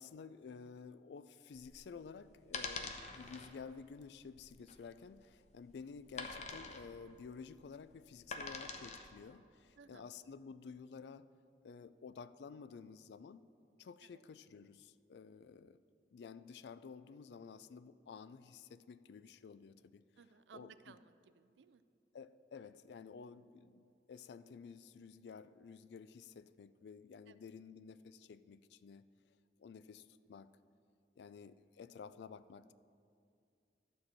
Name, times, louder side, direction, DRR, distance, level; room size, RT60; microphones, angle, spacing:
voice 1, 0.0-11.3 11.6-13.4 13.8-15.8 16.1-20.0 20.5-21.0 22.1-29.1 29.6-30.5 31.2-32.7, left 5 dB, 70° left, 15 dB, 0.3 m, -52 dB
sound 1, 1.6-9.2, left 4 dB, 40° left, 0.7 m, -46 dB
voice 2, 9.8-10.1 14.0-14.2 20.2-21.8 27.3-27.4, right 6 dB, 80° right, 13 dB, 0.4 m, -60 dB
12.5 x 4.4 x 7.6 m, 2.4 s
head